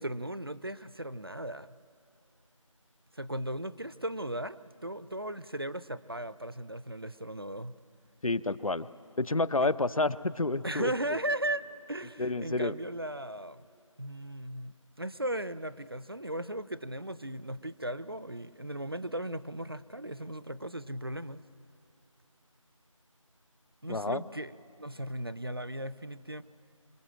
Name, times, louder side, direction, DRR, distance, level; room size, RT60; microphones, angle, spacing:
voice 1, 0.0-1.7 3.1-7.7 9.6-9.7 10.6-13.6 14.0-21.4 23.8-24.5 24.8-26.4, right 1 dB, 45° right, 16 dB, 0.5 m, -37 dB
voice 2, 8.2-8.9 9.2-11.2 12.2-12.7 23.9-24.2, left 2 dB, 90° left, 16 dB, 0.8 m, -29 dB
27.0 x 26.0 x 7.7 m, 2.7 s
figure-of-eight pair, 175°, 17 cm